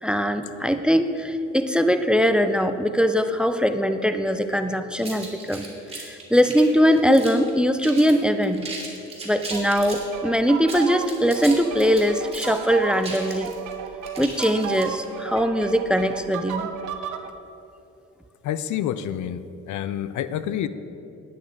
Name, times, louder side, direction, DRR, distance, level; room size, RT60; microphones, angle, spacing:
voice 1, 0.0-5.7 6.0-8.7 9.2-13.5 14.2-16.7, equal, 5° right, 9 dB, 0.5 m, -21 dB
sound 1, 5.0-7.5 7.8-8.2 8.4-10.1 10.6-15.1, right 3 dB, 20° right, 2.8 m, -37 dB
sound 2, 9.5-17.3, right 7 dB, 80° right, 0.8 m, -34 dB
voice 2, 18.4-20.7, left 10 dB, 75° left, 13 dB, 0.5 m, -28 dB
10.5 x 9.1 x 4.7 m, 2.7 s
cardioid pair, 90°, 30 cm